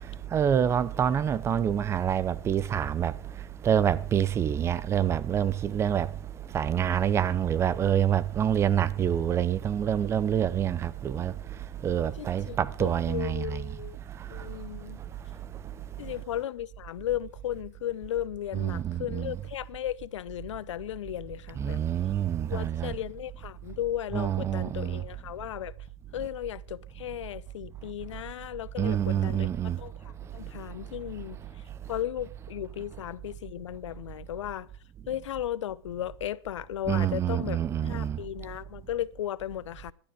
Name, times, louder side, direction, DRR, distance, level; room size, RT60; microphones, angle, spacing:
voice 1, 0.3-3.1 3.6-6.1 6.5-11.3 11.8-13.6 18.5-19.3 21.6-22.9 24.1-25.0 28.8-29.8 36.9-38.2, right 9 dB, 20° right, 0.6 m, -26 dB
voice 2, 12.2-14.0 14.3-15.0 16.0-21.8 22.5-25.7 26.1-29.5 29.8-31.4 31.9-34.7 35.1-39.9, left 12 dB, 85° left, 0.9 m, -35 dB
15.0 x 12.0 x 5.0 m
supercardioid pair, 150°, 15 cm